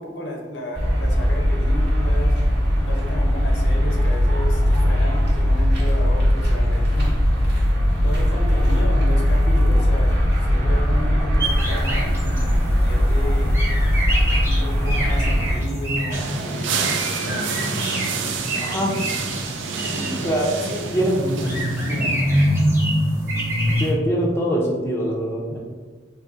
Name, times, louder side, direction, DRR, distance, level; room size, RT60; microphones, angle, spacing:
voice 1, 0.0-2.4 2.8-7.1 8.0-13.6 14.4-17.8 18.1-19.2 19.9-22.2, equal, 75° left, 0 dB, 0.6 m, -33 dB
sound 1, 0.7-15.6, equal, 60° right, 0.8 m, -19 dB
sound 2, 11.4-23.9, equal, 15° right, 0.7 m, -26 dB
sound 3, 16.1-22.4, right 5 dB, 85° right, 0.4 m, -29 dB
voice 2, 18.6-18.9 20.2-20.5 20.9-21.1 21.4-21.5 23.8-25.6, right 1 dB, 15° left, -3 dB, 0.4 m, -23 dB
3.7 x 2.6 x 2.4 m, 1.4 s
head